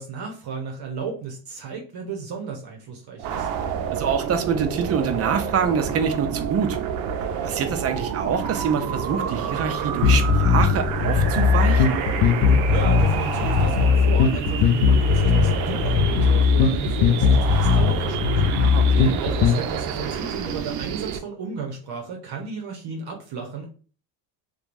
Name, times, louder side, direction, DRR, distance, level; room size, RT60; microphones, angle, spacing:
voice 1, 0.0-3.5 12.7-18.4 19.2-23.7, right 5 dB, 55° right, 0.9 m, -34 dB
sound 1, 3.2-21.2, right 8 dB, 85° right, 0.6 m, -29 dB
voice 2, 3.9-6.8 7.4-12.0 18.6-19.1, right 6 dB, 35° right, 0.4 m, -25 dB
sound 2, 10.0-19.6, left 5 dB, 55° left, 0.5 m, -19 dB
3.0 x 2.3 x 2.5 m
supercardioid pair, 90°, 48 cm